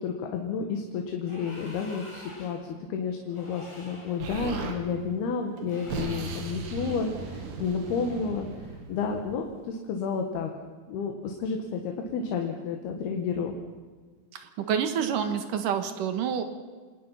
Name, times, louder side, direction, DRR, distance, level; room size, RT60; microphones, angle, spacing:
voice 1, 0.0-10.5 10.9-13.6, left 5 dB, 80° left, 3 dB, 3.5 m, -31 dB
sound 1, 1.2-2.7 3.3-4.3 5.6-6.6, equal, 5° left, 6.1 m, -47 dB
Explosion, 4.2-4.8 5.6-9.4, right 4 dB, 80° right, 4.1 m, -37 dB
voice 2, 14.3-16.4, right 8 dB, 65° right, 8 dB, 2.8 m, -28 dB
27.5 x 18.5 x 5.7 m, 1.5 s
omnidirectional pair, 4.5 m